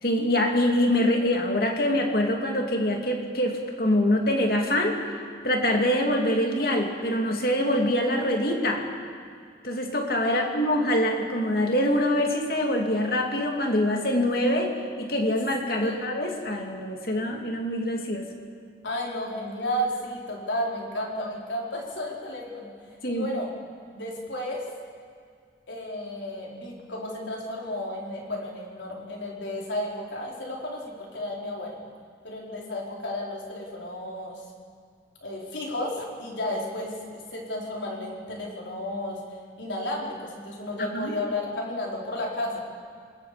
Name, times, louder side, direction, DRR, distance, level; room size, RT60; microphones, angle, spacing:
voice 1, 0.0-4.9 5.4-8.8 9.6-14.7 15.0-18.2 23.0-23.3 40.9-41.1, left 1 dB, 55° left, 2 dB, 2.7 m, -24 dB
voice 2, 15.8-16.1 18.8-22.7 23.1-23.5 23.9-24.7 25.7-31.8 32.2-34.4 35.2-42.6, left 1 dB, 85° left, -2 dB, 4.6 m, -33 dB
27.5 x 20.5 x 5.2 m, 2.1 s
head